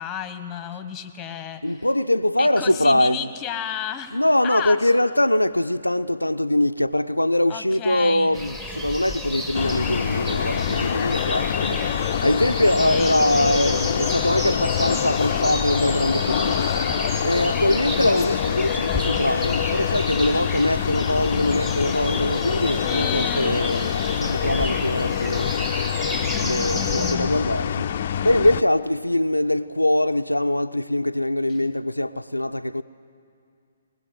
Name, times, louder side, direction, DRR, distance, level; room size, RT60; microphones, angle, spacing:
voice 1, 0.0-1.8 2.4-4.9 7.5-8.4 12.4-13.3 22.8-23.6 26.3-27.3, left 9 dB, 15° left, 1.3 m, -32 dB
voice 2, 1.6-3.2 4.1-11.9 12.2-25.6 26.4-27.9 28.2-32.8, left 1 dB, 90° left, 0.5 m, -22 dB
sound 1, 8.3-27.2, left 1 dB, 10° right, 2.1 m, -32 dB
sound 2, 9.5-28.6, left 9 dB, 45° left, 0.5 m, -25 dB
21.0 x 20.5 x 9.2 m
figure-of-eight pair, 130°, 0 cm